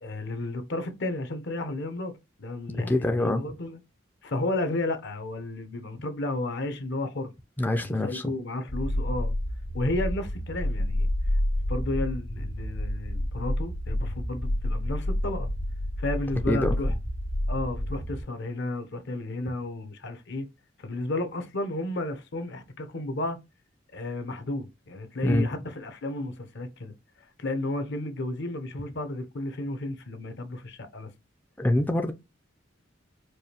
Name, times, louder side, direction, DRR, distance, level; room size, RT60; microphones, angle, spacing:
voice 1, 0.0-3.8 4.2-7.3 7.8-9.3 9.7-11.1 11.7-15.5 16.0-16.9 17.5-20.5 20.8-23.4 23.9-31.1, left 2 dB, 60° left, 0.7 m, -33 dB
voice 2, 2.9-3.4 7.6-8.3 16.5-16.7 25.2-25.5 31.6-32.1, left 1 dB, 10° left, 0.3 m, -25 dB
sound 1, 8.7-18.2, left 1 dB, 80° left, 1.5 m, -29 dB
4.7 x 2.5 x 2.8 m
head